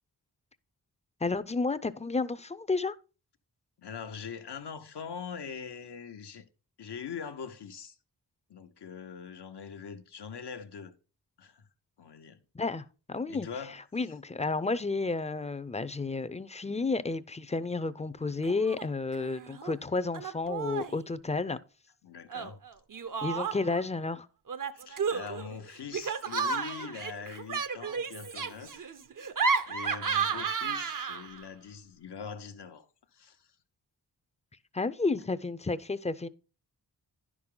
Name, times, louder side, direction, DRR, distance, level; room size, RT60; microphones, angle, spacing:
voice 1, 1.2-3.0 12.5-13.5 13.9-21.6 23.2-24.3 34.7-36.3, left 3 dB, 15° left, 0.5 m, -31 dB
voice 2, 3.8-6.5 6.8-8.0 8.5-10.9 11.4-11.7 12.0-12.4 13.3-13.8 22.0-22.6 24.7-29.0 29.7-33.5 35.2-35.3, left 6 dB, 80° left, 0.9 m, -43 dB
Laughter, 18.4-18.9 19.1-19.7 20.1-21.0 22.3-23.8 24.5-31.4, right 5 dB, 50° right, 0.7 m, -33 dB
10.5 x 6.1 x 3.8 m
cardioid pair, 50°, 40 cm